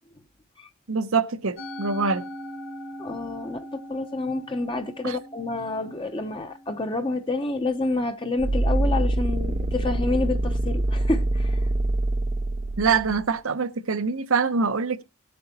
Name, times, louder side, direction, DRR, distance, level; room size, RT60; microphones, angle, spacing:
voice 1, 0.9-2.3 5.0-5.2 12.8-15.0, right 5 dB, 85° right, 0.9 m, -24 dB
Musical instrument, 1.6-8.0, equal, 65° left, 2.1 m, -41 dB
voice 2, 3.0-11.7, left 2 dB, 25° left, 0.7 m, -28 dB
sound 1, 8.4-13.3, right 1 dB, 30° right, 0.4 m, -25 dB
18.5 x 7.8 x 2.8 m
head